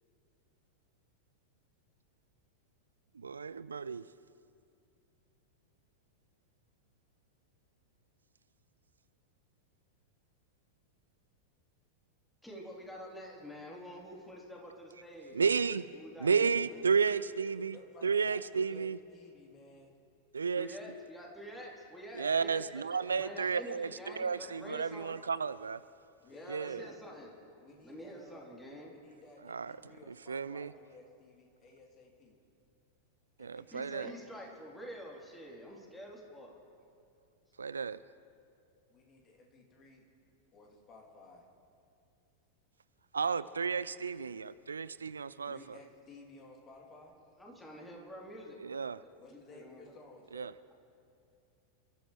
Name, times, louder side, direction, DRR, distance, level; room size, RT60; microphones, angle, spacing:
voice 1, 3.2-4.0 15.3-15.8 16.2-17.8 18.0-19.0 20.3-20.7 22.2-25.8 26.5-26.9 29.5-30.7 33.4-34.1 37.6-38.0 43.1-45.6 48.6-49.0 50.3-50.5, right 5 dB, 75° right, 16 dB, 0.3 m, -32 dB
voice 2, 12.4-15.6 15.9-16.8 20.6-25.2 26.3-27.3 27.8-28.9 33.7-36.5 47.4-48.6 49.3-49.9, equal, 5° left, -3 dB, 3.7 m, -47 dB
voice 3, 17.7-19.9 22.1-22.7 26.2-27.0 27.6-28.5 28.9-32.3 33.4-34.5 38.9-40.0 40.5-41.5 45.4-47.3 49.2-50.5, left 2 dB, 30° left, -1 dB, 3.1 m, -56 dB
29.0 x 13.5 x 3.3 m, 2.5 s
figure-of-eight pair, 90°, 0 cm